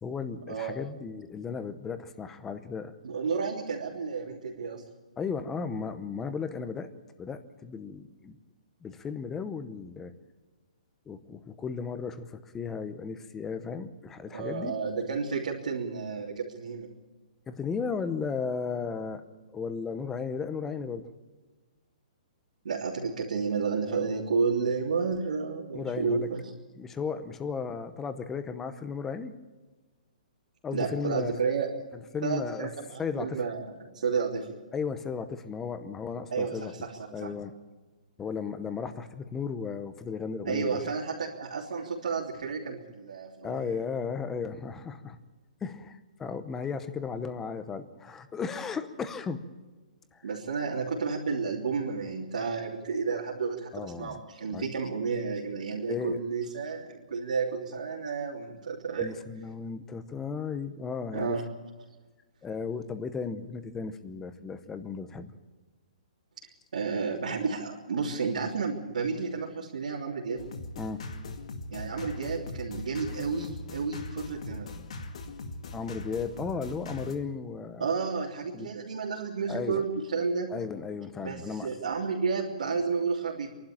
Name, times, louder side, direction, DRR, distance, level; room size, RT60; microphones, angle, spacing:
voice 1, 0.0-3.0 5.2-6.9 7.2-8.4 8.8-10.1 11.1-14.7 17.5-19.2 19.5-21.1 23.9-24.0 25.7-26.3 26.7-29.3 30.6-31.4 31.9-33.5 34.7-36.7 37.1-37.5 38.2-40.9 43.4-45.2 45.6-49.4 50.1-50.4 53.7-54.7 55.9-56.2 59.0-61.5 62.4-65.3 70.8-71.1 75.7-78.0 78.5-78.7 79.5-79.9 80.5-81.8, left 5 dB, 10° left, 11 dB, 0.7 m, -35 dB
voice 2, 3.0-4.8 14.3-16.9 22.6-26.4 30.7-31.7 32.2-34.5 36.3-36.9 37.2-37.3 40.4-43.7 50.2-59.1 61.1-61.4 66.7-70.4 71.7-74.7 77.8-80.5 81.2-83.5, right 5 dB, 75° right, -4 dB, 3.2 m, -31 dB
sound 1, 70.4-77.1, left 2 dB, 55° left, 2.2 m, -40 dB
26.5 x 12.0 x 8.7 m, 1.3 s
hypercardioid pair, 175°, 4 cm